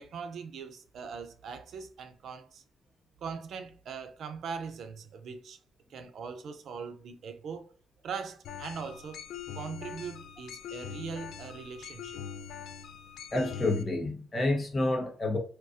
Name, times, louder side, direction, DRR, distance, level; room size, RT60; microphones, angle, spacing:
voice 1, 0.0-2.6 3.2-5.6 5.9-7.7 8.0-9.2 9.6-12.3, right 5 dB, 65° right, 0.4 m, -41 dB
sound 1, 8.4-13.8, left 7 dB, 80° left, 0.3 m, -43 dB
voice 2, 13.3-15.4, left 2 dB, 25° left, 0.9 m, -29 dB
3.7 x 2.3 x 2.6 m
cardioid pair, 130°, 0 cm